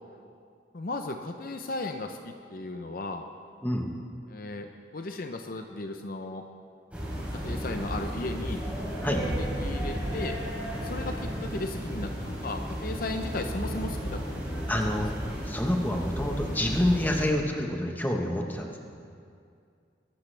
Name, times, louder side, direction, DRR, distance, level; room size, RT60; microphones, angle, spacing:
voice 1, 0.7-3.3 4.3-6.4 7.1-8.6 9.2-10.4 10.8-15.0, left 2 dB, 50° left, 5 dB, 0.7 m, -36 dB
sound 1, 6.9-17.3, equal, 10° right, 3.6 m, -33 dB
voice 2, 14.7-15.1 15.5-18.8, left 1 dB, 10° left, 1 dB, 1.1 m, -27 dB
22.0 x 12.0 x 3.4 m, 2.3 s
head